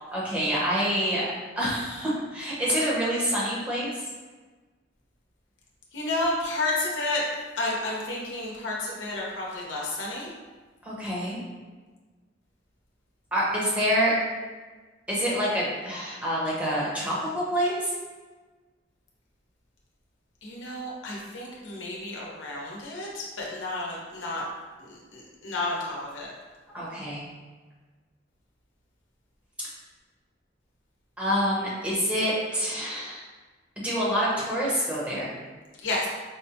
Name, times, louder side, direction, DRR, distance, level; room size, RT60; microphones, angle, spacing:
voice 1, 0.1-1.3 1.6-3.9 10.8-11.4 13.3-14.2 15.1-17.9 26.7-27.3 29.6-29.7 31.2-33.3 33.8-35.3, equal, 5° right, -8 dB, 0.8 m, -27 dB
voice 2, 5.9-7.2 7.6-10.3 20.4-24.4 24.8-26.3 35.8-36.1, left 2 dB, 85° left, -3 dB, 0.8 m, -31 dB
4.9 x 2.2 x 2.8 m, 1.3 s
head